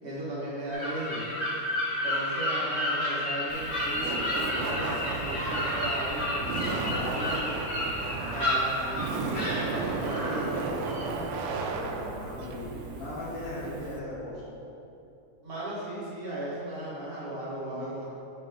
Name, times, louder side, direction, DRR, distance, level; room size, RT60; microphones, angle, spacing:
voice 1, 0.0-1.3 2.0-7.6 8.3-10.5 15.4-18.0, right 1 dB, 65° right, -8 dB, 0.5 m, -36 dB
sound 1, 0.7-11.1, left 1 dB, 40° left, 0.9 m, -31 dB
Laughter, 3.5-14.0, right 3 dB, 85° right, 2.1 m, -34 dB
voice 2, 11.4-14.4 17.7-17.9, left 1 dB, 85° left, -10 dB, 2.8 m, -39 dB
9.2 x 3.4 x 5.0 m, 2.8 s
omnidirectional pair, 3.6 m